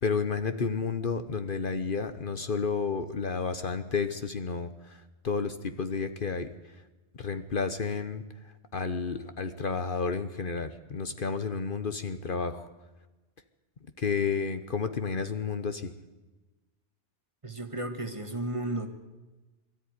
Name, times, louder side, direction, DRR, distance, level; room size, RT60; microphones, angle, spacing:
voice 1, 0.0-6.5 7.2-8.2 8.7-12.7 14.0-15.9, left 5 dB, 50° left, 9 dB, 1.1 m, -31 dB
voice 2, 17.4-18.9, right 1 dB, 30° right, 6 dB, 1.9 m, -33 dB
22.5 x 13.5 x 9.6 m, 1.2 s
omnidirectional pair, 1.1 m